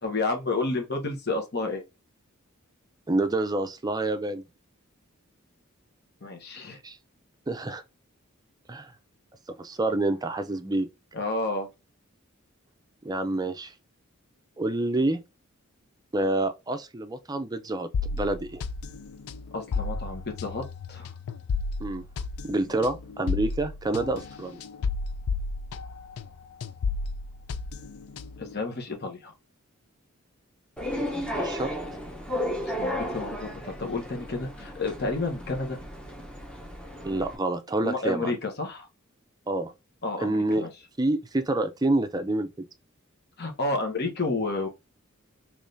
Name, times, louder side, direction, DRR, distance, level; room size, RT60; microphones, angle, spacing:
voice 1, 0.0-1.8 6.2-6.8 11.1-11.7 19.5-21.1 28.4-29.3 32.6-35.8 37.8-38.9 40.0-40.7 43.4-44.7, left 3 dB, 50° left, 1.0 m, -30 dB
voice 2, 3.1-4.4 6.8-7.0 7.5-7.8 8.7-8.9 9.6-10.9 13.0-13.7 14.6-15.2 16.1-18.6 21.8-22.0 22.4-24.6 31.3-31.7 37.0-38.4 39.5-39.7 40.2-40.6 41.0-42.5, right 2 dB, 20° right, 0.5 m, -27 dB
sound 1, 17.9-26.3 26.6-28.5, left 4 dB, 80° left, 0.4 m, -32 dB
sound 2, 30.8-37.4, left 1 dB, 5° left, 0.8 m, -34 dB
3.5 x 3.1 x 2.6 m
head